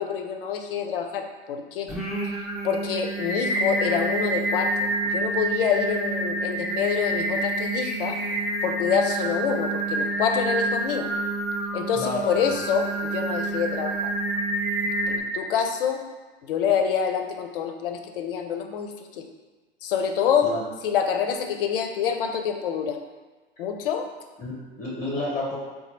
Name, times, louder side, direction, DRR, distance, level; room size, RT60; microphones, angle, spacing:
voice 1, 0.0-1.9 2.6-8.2 8.6-11.1 11.7-14.1 15.1-16.0 16.4-19.2 19.8-20.5 20.8-23.0 23.6-24.1, left 7 dB, 65° left, 5 dB, 0.6 m, -26 dB
Singing, 1.9-15.2, right 2 dB, ahead, 0.8 m, -28 dB
voice 2, 11.9-12.6 20.4-20.6 24.4-25.6, left 2 dB, 25° left, -4 dB, 0.9 m, -30 dB
4.1 x 2.4 x 4.0 m, 1.3 s
hypercardioid pair, 90°, 30 cm